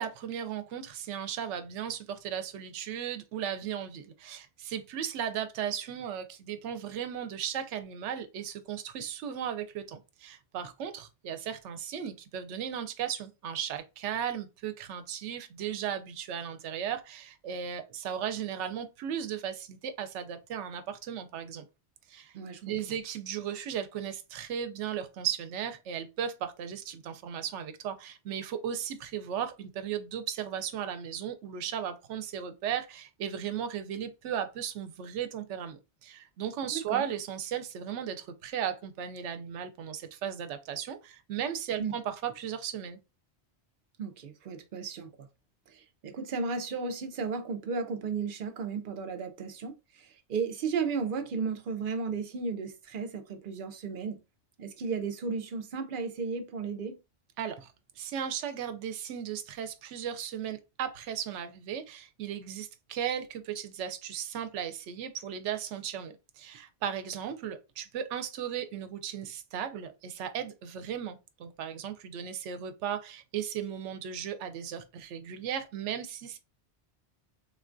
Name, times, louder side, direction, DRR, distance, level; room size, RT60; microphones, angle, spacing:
voice 1, 0.0-21.7 22.1-22.3 22.6-43.0 57.4-76.4, right 9 dB, 90° right, 0.9 m, -36 dB
voice 2, 22.3-22.7 36.7-37.0 41.8-41.9 44.0-45.3 45.7-54.2 54.6-57.0, right 5 dB, 55° right, 0.7 m, -34 dB
3.7 x 2.2 x 2.5 m
omnidirectional pair, 1.2 m